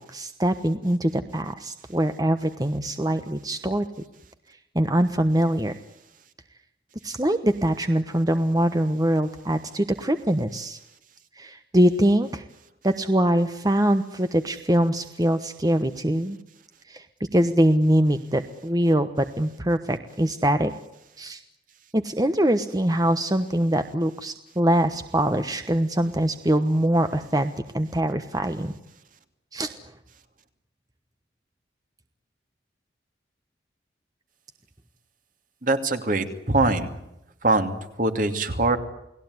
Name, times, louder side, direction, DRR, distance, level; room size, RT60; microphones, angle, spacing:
voice 1, 0.0-3.8 4.7-5.8 7.0-10.8 11.4-12.4 12.8-16.4 16.9-17.1 17.3-20.7 21.2-21.4 21.9-28.7 29.5-29.7, right 1 dB, 20° right, 9 dB, 1.1 m, -23 dB
voice 2, 35.6-36.9 37.4-38.8, right 2 dB, 50° right, 7 dB, 2.6 m, -23 dB
29.5 x 19.5 x 9.6 m, 0.88 s
head